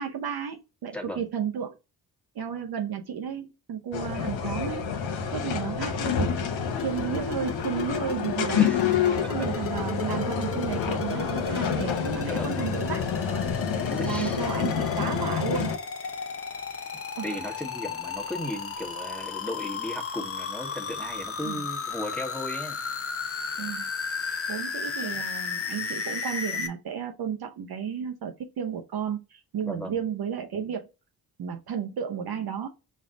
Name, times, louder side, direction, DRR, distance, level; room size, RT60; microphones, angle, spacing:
voice 1, 0.0-1.8 2.3-4.9 5.3-6.3 6.8-8.7 9.2-13.1 14.0-15.8 17.2-17.4 21.4-21.6 23.6-23.9 24.5-30.9 31.4-32.7, right 7 dB, 55° right, 0.8 m, -33 dB
voice 2, 0.9-1.2 8.6-8.8 12.2-12.5 13.9-14.4 17.2-22.8 25.0-25.2 29.7-30.0, left 1 dB, 5° left, 1.3 m, -36 dB
sound 1, 3.9-15.8, left 7 dB, 75° left, 0.9 m, -28 dB
sound 2, 6.7-26.7, left 5 dB, 30° left, 0.8 m, -34 dB
5.3 x 2.4 x 3.8 m
supercardioid pair, 45°, 45 cm